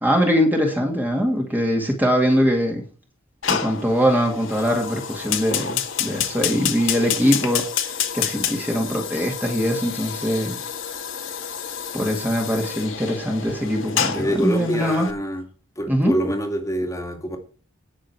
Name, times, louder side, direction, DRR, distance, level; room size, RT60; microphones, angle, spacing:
voice 1, 0.0-2.8 3.5-7.6 8.1-10.6 11.9-15.1 15.9-16.1, equal, 10° right, 2.1 m, -22 dB
Fire, 3.4-15.1, left 8 dB, 65° left, 2.0 m, -29 dB
voice 2, 13.9-15.4 15.8-17.4, equal, 15° left, 2.2 m, -26 dB
18.0 x 6.5 x 4.5 m
head